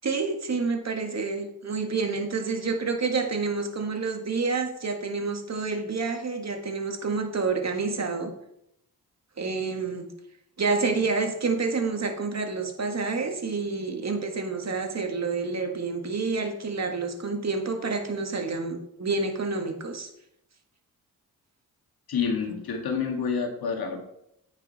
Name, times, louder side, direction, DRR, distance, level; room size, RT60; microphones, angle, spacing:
voice 1, 0.0-8.3 9.4-10.1 10.6-20.1, right 4 dB, 45° right, 4 dB, 1.7 m, -28 dB
voice 2, 22.1-24.0, left 6 dB, 70° left, 3 dB, 1.9 m, -28 dB
9.0 x 5.6 x 4.1 m, 0.77 s
supercardioid pair, 50°, 38 cm